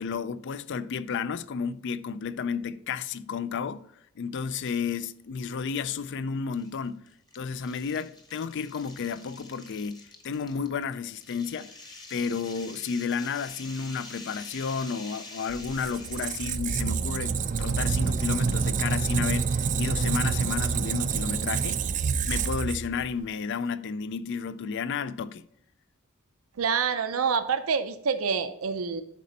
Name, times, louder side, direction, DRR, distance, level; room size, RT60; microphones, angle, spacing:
voice 1, 0.0-3.9 4.2-7.1 7.3-11.7 12.1-21.9 22.2-25.5, left 6 dB, 60° left, 0.4 m, -32 dB
sound 1, 4.7-5.0 5.4-5.5 6.5-16.7, left 3 dB, 20° left, 1.0 m, -46 dB
Squeak, 15.5-23.3, right 5 dB, 40° right, 0.4 m, -27 dB
voice 2, 26.6-29.0, right 6 dB, 90° right, 0.6 m, -27 dB
11.0 x 4.2 x 4.0 m
head